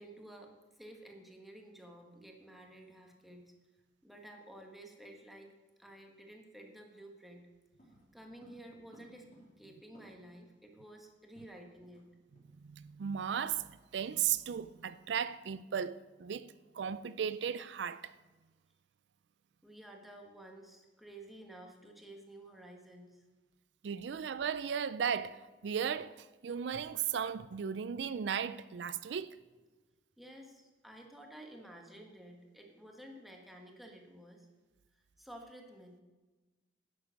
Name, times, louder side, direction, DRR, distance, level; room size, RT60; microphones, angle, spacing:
voice 1, 0.0-3.4 4.0-5.5 5.8-7.4 8.1-9.3 9.6-12.0 19.6-23.2 30.2-34.5 34.9-36.0, right 1 dB, ahead, 1.5 m, -52 dB
sound 1, 7.8-10.4 10.7-10.8 11.1-12.1 12.3-12.6 12.9-13.2, right 1 dB, 45° left, 3.7 m, -61 dB
voice 2, 12.6-13.7 13.9-18.1 23.8-29.4, right 8 dB, 70° right, 0.4 m, -36 dB
11.0 x 7.6 x 6.4 m
head